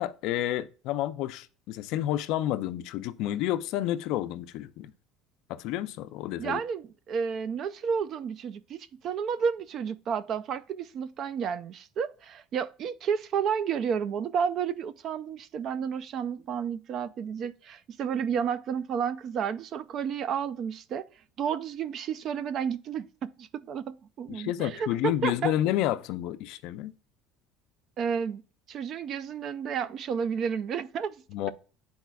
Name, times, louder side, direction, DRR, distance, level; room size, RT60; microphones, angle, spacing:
voice 1, 0.0-4.9 5.5-6.6 24.3-26.9 31.3-31.5, left 13 dB, 60° left, 0.4 m, -30 dB
voice 2, 6.4-21.1 21.4-25.5 28.0-28.4 28.7-31.1, right 7 dB, 40° right, 0.3 m, -31 dB
10.5 x 4.1 x 2.3 m
cardioid pair, 160°, 0 cm